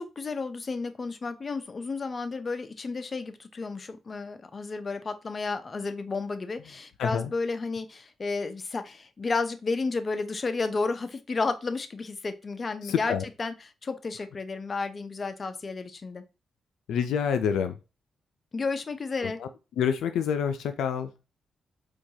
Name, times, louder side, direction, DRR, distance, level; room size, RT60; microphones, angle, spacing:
voice 1, 0.0-16.2 18.5-19.4, left 4 dB, 40° left, 9 dB, 0.5 m, -32 dB
voice 2, 7.0-7.3 12.8-13.2 16.9-17.8 19.2-19.5 19.8-21.1, left 7 dB, 90° left, 9 dB, 0.3 m, -27 dB
4.5 x 2.3 x 2.7 m, 0.28 s
cardioid pair, 75°, 0 cm